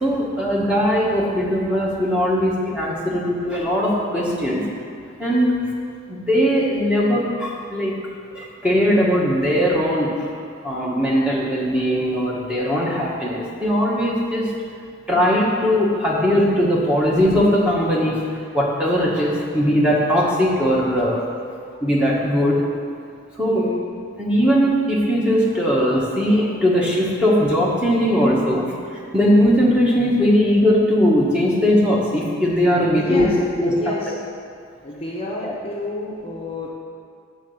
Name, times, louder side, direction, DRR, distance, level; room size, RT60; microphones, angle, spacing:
voice 1, 0.0-4.6 5.2-5.5 6.1-7.9 8.3-10.1 10.6-14.5 15.1-18.2 18.5-21.2 21.8-22.7 23.4-23.6 24.2-28.6 29.1-33.3 33.6-33.9 35.4-35.5, equal, 5° right, -5 dB, 1.1 m, -19 dB
voice 2, 23.5-23.9 33.0-33.4 33.6-34.1 34.8-36.7, left 2 dB, 30° left, -4 dB, 0.7 m, -29 dB
8.1 x 3.9 x 6.8 m, 2.3 s
head